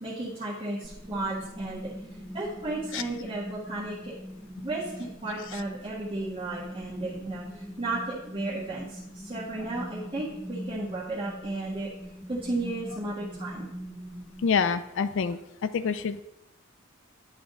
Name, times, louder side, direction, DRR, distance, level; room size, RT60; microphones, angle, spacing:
voice 1, 0.0-1.8 2.3-4.1 4.6-11.9 12.3-13.7, right 2 dB, 25° right, -9 dB, 1.4 m, -34 dB
sound 1, 0.8-14.5, equal, ahead, 0.7 m, -42 dB
voice 2, 14.4-16.2, left 6 dB, 60° left, 13 dB, 0.3 m, -27 dB
10.5 x 3.6 x 3.7 m, 0.88 s
head